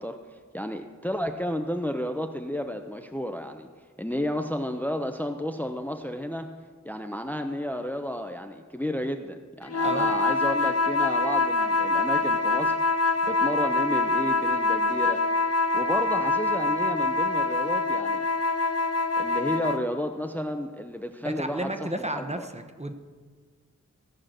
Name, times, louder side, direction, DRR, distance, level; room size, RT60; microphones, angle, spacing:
voice 1, 0.0-3.7 4.0-6.5 6.8-12.7 13.3-15.2 15.7-18.2 19.2-22.5, left 1 dB, 5° left, 5 dB, 0.6 m, -32 dB
sound 1, 9.7-19.9, left 2 dB, 55° left, 0.5 m, -25 dB
voice 2, 9.8-10.1 21.2-22.9, right 1 dB, 20° right, 6 dB, 0.9 m, -32 dB
16.5 x 5.8 x 6.5 m, 1.5 s
wide cardioid pair, 50°, 30 cm